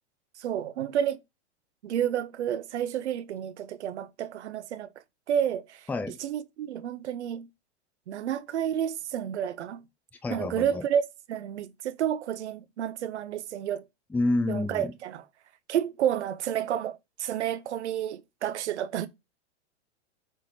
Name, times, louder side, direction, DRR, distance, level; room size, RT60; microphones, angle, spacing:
voice 1, 0.4-1.2 1.8-4.9 5.3-5.9 6.2-7.5 8.1-9.8 10.3-11.0 11.3-13.8 14.5-15.2 15.7-19.1, right 9 dB, 80° right, 0.9 m, -30 dB
voice 2, 10.2-10.9 14.1-14.9, left 2 dB, 5° left, 0.6 m, -28 dB
7.8 x 3.3 x 4.3 m
hypercardioid pair, 130°, 34 cm